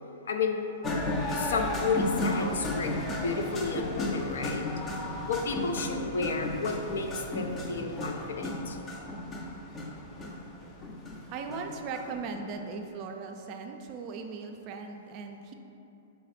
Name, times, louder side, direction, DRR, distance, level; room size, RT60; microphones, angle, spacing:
voice 1, 0.3-0.6 1.3-4.7 5.3-8.8, left 4 dB, 80° left, 4 dB, 0.4 m, -32 dB
sound 1, 0.8-12.7, left 1 dB, 25° left, 0.5 m, -34 dB
voice 2, 11.3-15.5, right 4 dB, 40° right, 4 dB, 0.3 m, -38 dB
3.4 x 3.1 x 4.2 m, 2.9 s
hypercardioid pair, 135°, 0 cm